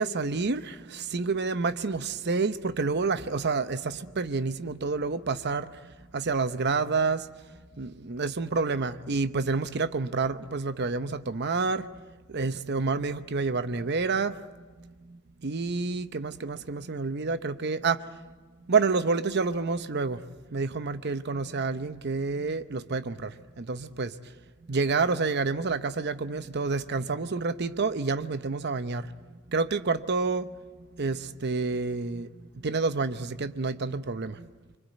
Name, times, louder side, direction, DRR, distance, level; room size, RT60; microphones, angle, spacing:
voice 1, 0.0-7.3 7.8-11.9 12.3-18.3 18.7-20.2 20.5-24.1 24.7-30.6 30.9-34.5, right 4 dB, 50° right, 0.8 m, -29 dB
26.0 x 23.5 x 9.2 m
head